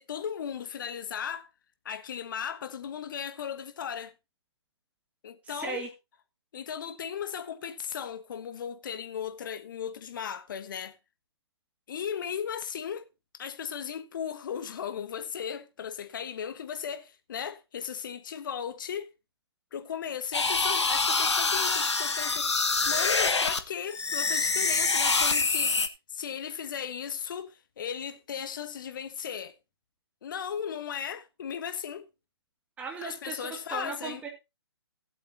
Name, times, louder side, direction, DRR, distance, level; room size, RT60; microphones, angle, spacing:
voice 1, 0.0-1.5 1.8-4.1 5.2-5.8 6.5-11.0 11.9-13.1 13.3-19.1 19.7-22.6 22.8-25.8 26.1-29.5 30.2-32.1 33.0-34.2, left 8 dB, 45° left, 1.2 m, -36 dB
voice 2, 5.4-5.9 32.8-34.3, right 4 dB, 10° right, 2.1 m, -37 dB
sound 1, 20.3-23.6 23.9-25.9, left 4 dB, 80° left, 1.3 m, -26 dB
17.5 x 8.0 x 2.8 m
figure-of-eight pair, 140°, 14 cm